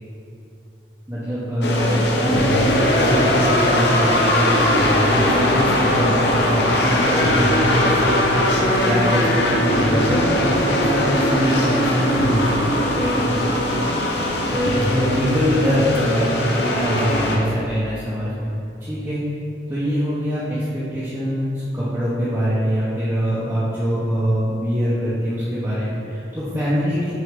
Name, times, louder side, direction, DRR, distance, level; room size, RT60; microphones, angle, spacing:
voice 1, 1.1-14.0 14.5-18.5 18.8-19.2 19.7-27.1, equal, 15° right, -11 dB, 1.1 m, -23 dB
sound 1, 1.6-17.4, left 1 dB, 70° left, 0.8 m, -20 dB
6.4 x 4.2 x 5.3 m, 2.6 s
head